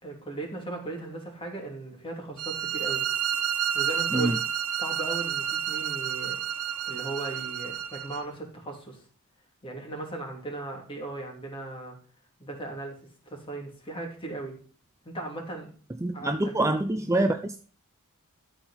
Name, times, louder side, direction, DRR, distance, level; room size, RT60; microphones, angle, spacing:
voice 1, 0.0-3.0 3.7-4.3 4.8-6.4 6.9-9.0 9.6-12.0 12.4-13.0 13.3-14.6 15.0-15.7 16.1-16.5, right 2 dB, 25° left, 2.7 m, -37 dB
sound 1, 2.4-8.2, right 9 dB, 75° right, 1.2 m, -30 dB
voice 2, 16.0-17.6, right 2 dB, 15° right, 0.5 m, -25 dB
13.0 x 4.5 x 5.6 m
head